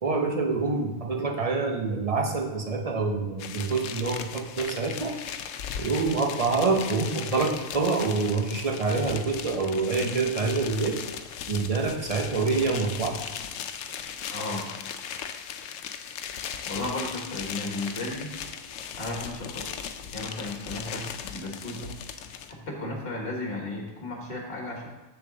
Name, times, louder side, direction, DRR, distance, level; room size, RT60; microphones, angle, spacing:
voice 1, 0.0-5.2 5.8-11.0 11.5-13.2, right 4 dB, 35° right, 2 dB, 0.8 m, -26 dB
sound 1, 3.4-22.5, left 8 dB, 85° left, 0.9 m, -37 dB
voice 2, 14.3-14.7 16.7-18.3 19.0-19.7 20.1-22.0 22.5-24.9, left 2 dB, 50° left, 0 dB, 1.6 m, -34 dB
7.0 x 6.9 x 3.9 m, 1.1 s
omnidirectional pair, 1.3 m